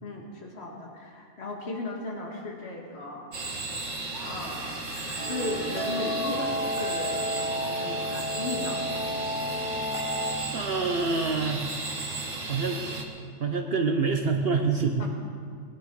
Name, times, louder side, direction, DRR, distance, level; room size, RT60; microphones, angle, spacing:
voice 1, 0.0-3.4 4.2-4.8 5.3-9.3 15.0-15.1, left 2 dB, 60° left, -1 dB, 2.0 m, -36 dB
sound 1, 3.3-13.0, right 3 dB, 85° right, 2.0 m, -35 dB
sound 2, 4.1-8.5, left 2 dB, 75° left, 2.4 m, -43 dB
sound 3, 5.2-10.3, left 1 dB, 25° right, 1.6 m, -31 dB
voice 2, 10.5-11.6 12.5-12.8 13.4-15.1, right 4 dB, 55° right, 4 dB, 1.0 m, -26 dB
21.5 x 10.5 x 4.8 m, 2.2 s
omnidirectional pair, 1.3 m